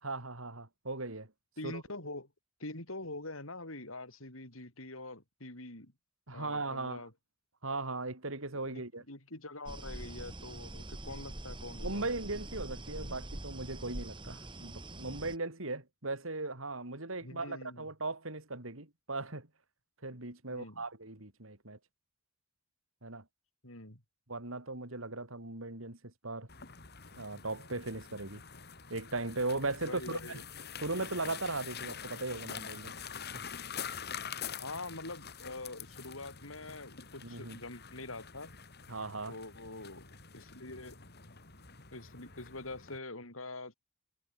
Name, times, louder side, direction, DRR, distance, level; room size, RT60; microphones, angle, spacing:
voice 1, 0.0-1.3 1.6-1.8 6.3-7.0 7.6-9.0 11.8-19.5 20.0-21.8 23.0-23.2 24.3-26.5 27.2-28.4 28.9-30.4 30.8-32.9 37.2-37.6 38.9-39.4, right 2 dB, 70° right, 3.9 m, -38 dB
voice 2, 1.6-2.3 2.6-5.9 6.3-7.1 8.6-12.1 17.2-17.9 20.5-20.8 23.6-24.0 29.8-30.4 34.6-38.5 39.3-41.0 41.9-43.7, left 2 dB, 75° left, 7.0 m, -45 dB
sound 1, 9.7-15.4, right 1 dB, 25° right, 2.2 m, -44 dB
sound 2, 26.5-43.0, left 7 dB, 50° left, 4.7 m, -46 dB
head